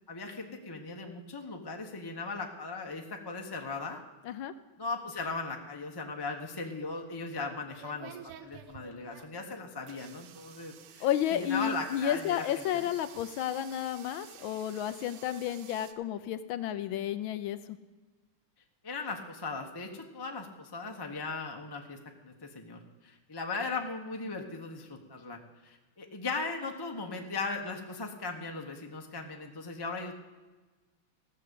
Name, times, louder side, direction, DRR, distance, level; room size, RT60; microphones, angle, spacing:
voice 1, 0.1-4.0 4.8-8.2 8.4-11.1 11.3-12.8 18.8-30.2, left 3 dB, 20° left, 2 dB, 0.6 m, -38 dB
sound 1, 6.9-15.9, right 10 dB, 90° right, 1.6 m, -52 dB
voice 2, 11.0-17.8, left 10 dB, 75° left, 12 dB, 1.3 m, -32 dB
15.0 x 6.6 x 8.3 m, 1.2 s
omnidirectional pair, 2.4 m